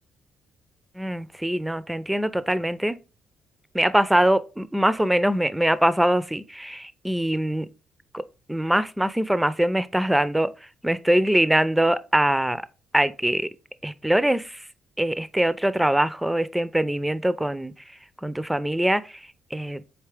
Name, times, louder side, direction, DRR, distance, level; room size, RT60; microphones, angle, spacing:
voice 1, 1.0-3.0 3.7-7.7 8.1-8.2 8.5-10.5 10.8-12.6 12.9-13.5 13.8-14.6 15.0-17.7 18.2-19.0 19.5-19.8, right 1 dB, 10° right, 0.4 m, -23 dB
4.3 x 3.4 x 3.3 m
hypercardioid pair, 45°, 0 cm